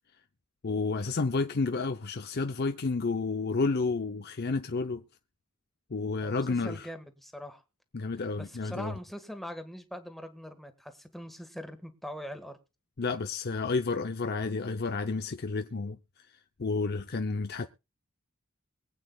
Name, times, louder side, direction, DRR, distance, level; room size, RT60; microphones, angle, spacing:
voice 1, 0.6-5.0 5.9-6.9 7.9-9.0 13.0-16.0 16.6-17.7, left 3 dB, 50° left, 0.7 m, -30 dB
voice 2, 6.2-7.6 8.4-12.6, equal, ahead, 1.6 m, -42 dB
23.5 x 8.8 x 2.3 m
head